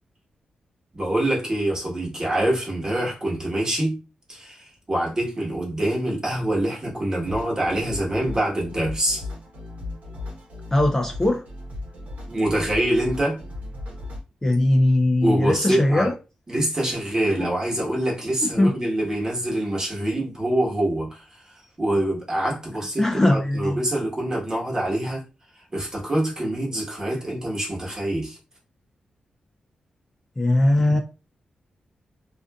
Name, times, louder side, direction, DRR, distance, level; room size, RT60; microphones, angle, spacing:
voice 1, 0.9-4.0 4.3-9.2 12.3-13.4 15.2-16.1 16.5-21.2 21.8-25.2 25.7-28.4, right 1 dB, 25° right, 1.1 m, -25 dB
sound 1, 7.2-14.2, left 2 dB, 80° right, 0.9 m, -36 dB
voice 2, 10.7-11.4 14.4-16.1 17.4-17.5 18.4-18.9 23.0-23.8 30.4-31.0, left 1 dB, 15° left, 0.4 m, -20 dB
2.4 x 2.4 x 2.2 m
cardioid pair, 100°, 3 cm